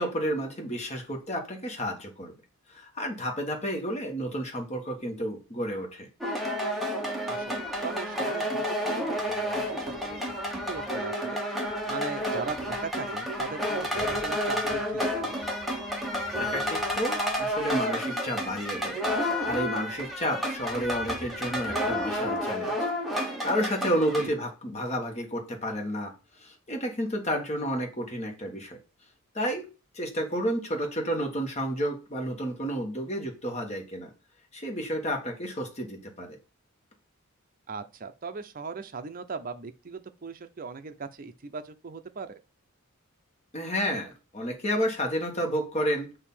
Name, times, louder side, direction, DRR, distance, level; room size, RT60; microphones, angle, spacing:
voice 1, 0.0-2.3 2.7-6.1 16.4-28.8 29.3-29.6 29.9-34.1 34.5-36.4 43.5-46.1, equal, 30° left, 1.3 m, -31 dB
sound 1, 6.2-24.3, equal, ahead, 1.0 m, -30 dB
voice 2, 7.3-10.2 10.5-11.4 11.9-15.1 24.2-24.3 37.7-42.3, right 4 dB, 40° right, 0.5 m, -39 dB
6.5 x 2.7 x 5.5 m
head